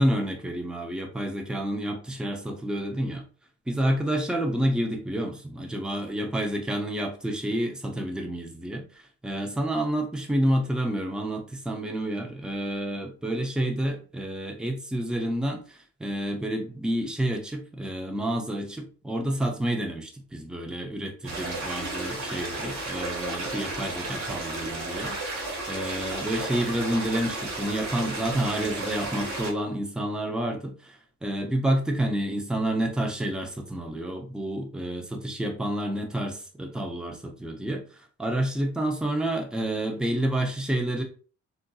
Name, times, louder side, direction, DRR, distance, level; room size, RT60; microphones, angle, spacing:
voice 1, 0.0-3.2 3.7-25.4 25.7-41.0, right 1 dB, 5° right, 2 dB, 0.5 m, -29 dB
sound 1, 21.2-29.5, right 2 dB, 70° right, 1.4 m, -33 dB
3.7 x 2.6 x 2.2 m, 0.39 s
cardioid pair, 135°, 29 cm